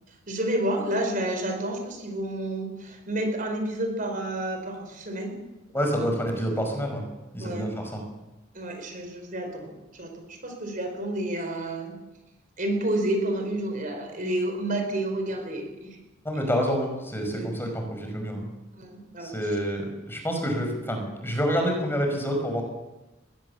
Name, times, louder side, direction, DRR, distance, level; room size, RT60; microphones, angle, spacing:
voice 1, 0.3-5.3 5.7-6.0 7.4-7.7 8.5-12.0 12.6-16.0 16.4-16.5 17.3-17.6 18.7-19.3, right 1 dB, 45° right, 4 dB, 4.7 m, -30 dB
voice 2, 5.7-7.0 7.3-8.0 16.2-18.5 19.2-22.6, equal, 10° left, 3 dB, 5.4 m, -28 dB
22.0 x 17.0 x 7.2 m, 1.0 s
head